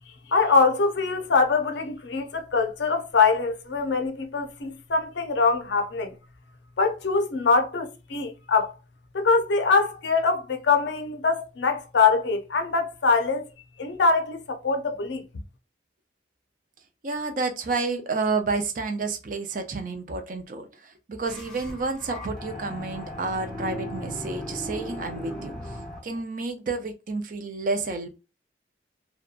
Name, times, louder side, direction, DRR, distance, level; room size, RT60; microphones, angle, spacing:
voice 1, 0.1-6.2 6.8-8.7 9.1-13.5 13.8-15.3, left 4 dB, 70° left, 0.5 m, -23 dB
voice 2, 17.0-28.1, right 3 dB, 45° right, 0.4 m, -30 dB
sound 1, 21.2-26.2, equal, 5° left, 0.5 m, -37 dB
2.7 x 2.2 x 2.4 m
head